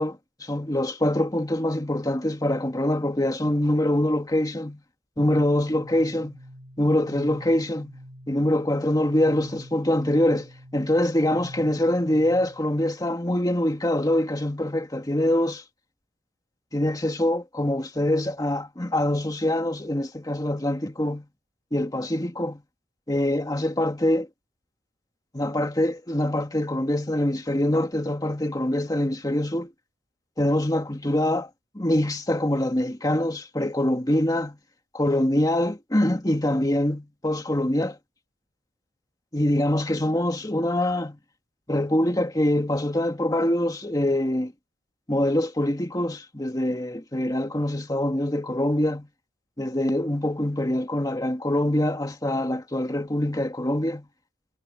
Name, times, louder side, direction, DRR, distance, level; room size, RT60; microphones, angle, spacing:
voice 1, 0.0-4.8 5.2-6.4 6.8-8.0 8.3-15.6 16.7-21.3 21.7-22.6 23.1-24.3 25.3-29.7 30.4-34.6 34.9-38.0 39.3-41.2 41.7-44.5 45.1-49.1 49.6-54.1, left 1 dB, 20° left, 1.9 m, -24 dB
sound 1, 5.2-12.7, equal, 70° right, 2.6 m, -45 dB
head